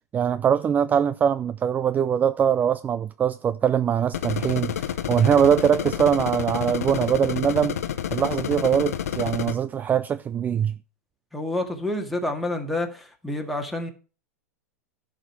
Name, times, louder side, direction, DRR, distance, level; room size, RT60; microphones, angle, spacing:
voice 1, 0.1-7.8 8.1-10.7, right 8 dB, 20° right, 0.4 m, -22 dB
sound 1, 4.1-9.5, left 9 dB, 70° left, 0.9 m, -29 dB
voice 2, 11.3-13.9, left 1 dB, ahead, 1.9 m, -28 dB
11.0 x 5.1 x 5.9 m
hypercardioid pair, 100°, 8 cm